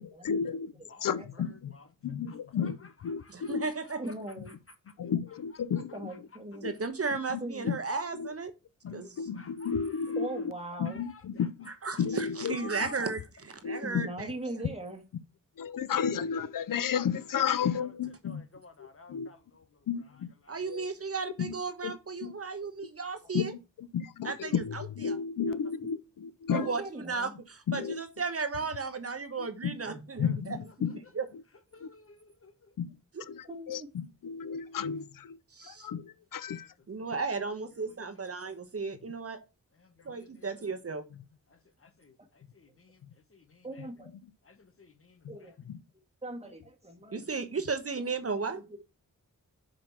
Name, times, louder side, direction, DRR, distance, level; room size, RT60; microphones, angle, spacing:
voice 1, 0.0-0.7 1.0-1.7 2.0-3.7 5.0-6.1 6.6-6.7 7.3-7.8 8.1-8.3 8.8-10.5 10.8-11.7 12.0-12.9 13.6-14.1 15.6-18.4 18.8-19.3 19.9-20.3 20.7-20.9 21.4-21.6 21.8-22.3 22.6-22.7 23.3-26.8 27.7-28.0 29.4-29.7 30.2-31.0 31.8-31.9 32.8-32.9 33.2-35.4 35.6-36.7 41.1-41.2 43.0-43.1 45.7-45.8, left 7 dB, 85° left, 0.5 m, -33 dB
voice 2, 0.9-1.9 2.3-2.7 3.2-3.5 4.0-4.1 4.5-4.6 4.9-5.0 5.9-6.2 8.9-10.4 10.8-12.0 12.5-13.1 17.5-17.9 18.2-19.9 20.4-20.6 25.4-25.6 30.2-30.3 30.6-31.1 31.7-32.7 36.6-36.7 37.0-37.2 37.7-38.7 39.7-40.8 41.5-43.9 44.4-45.5, left 2 dB, 45° left, 1.2 m, -54 dB
voice 3, 3.5-4.0 6.6-8.5 8.9-9.1 11.8-13.2 13.6-14.3 20.5-23.5 24.2-25.2 26.5-30.6 31.1-31.3 33.2-33.3 35.5-35.9 36.9-39.4 40.0-41.0 47.1-48.6, right 4 dB, 45° right, 1.1 m, -34 dB
voice 4, 4.0-4.6 5.9-6.7 7.4-7.7 10.2-11.0 13.8-15.0 26.5-27.3 29.9-30.0 33.5-33.9 43.6-44.1 45.3-45.5 46.2-47.3 48.3-48.8, right 1 dB, 20° right, 1.9 m, -40 dB
5.8 x 5.2 x 5.7 m
wide cardioid pair, 105°, 32 cm